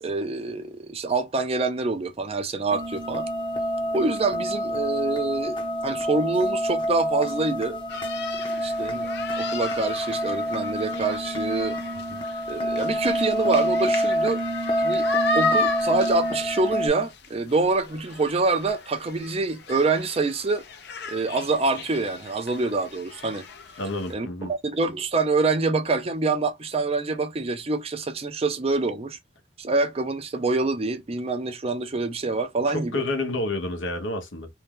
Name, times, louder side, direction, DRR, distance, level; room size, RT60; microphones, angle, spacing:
voice 1, 0.0-3.3 3.9-7.8 8.6-9.1 9.4-11.8 12.5-14.4 14.8-20.6 21.1-23.4 24.1-29.2 29.6-33.0, right 3 dB, 30° right, 0.5 m, -26 dB
sound 1, 2.7-16.9, equal, 25° left, 0.8 m, -27 dB
sound 2, 7.9-24.1, left 3 dB, 60° left, 0.6 m, -35 dB
voice 2, 23.8-24.5 32.7-34.5, left 2 dB, 80° left, 0.9 m, -29 dB
2.7 x 2.3 x 3.5 m
head